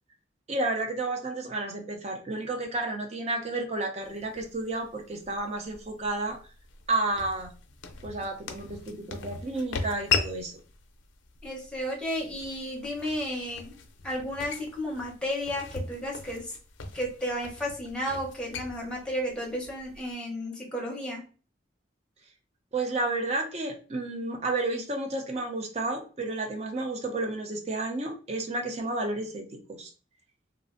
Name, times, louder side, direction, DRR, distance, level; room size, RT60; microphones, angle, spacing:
voice 1, 0.5-6.4 6.9-7.5 8.0-10.5 22.7-29.9, right 2 dB, 35° right, 3 dB, 0.5 m, -31 dB
sound 1, 4.0-20.1, left 5 dB, 80° left, 0.5 m, -38 dB
voice 2, 11.4-13.7 14.0-16.5 16.9-21.2, equal, 5° left, -2 dB, 0.7 m, -33 dB
3.1 x 2.5 x 2.5 m, 0.36 s
head